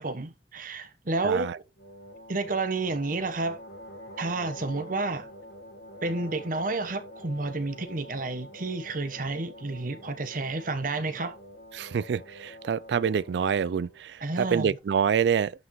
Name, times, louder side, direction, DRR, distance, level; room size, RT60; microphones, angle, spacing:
voice 1, 0.0-1.5 2.3-3.6 4.2-5.3 6.0-11.3 14.2-14.8, right 3 dB, 50° right, 1.0 m, -30 dB
voice 2, 1.2-1.6 11.7-15.5, right 7 dB, 75° right, 0.3 m, -26 dB
sound 1, 1.8-14.0, equal, 70° left, 1.5 m, -46 dB
11.0 x 5.7 x 3.1 m
head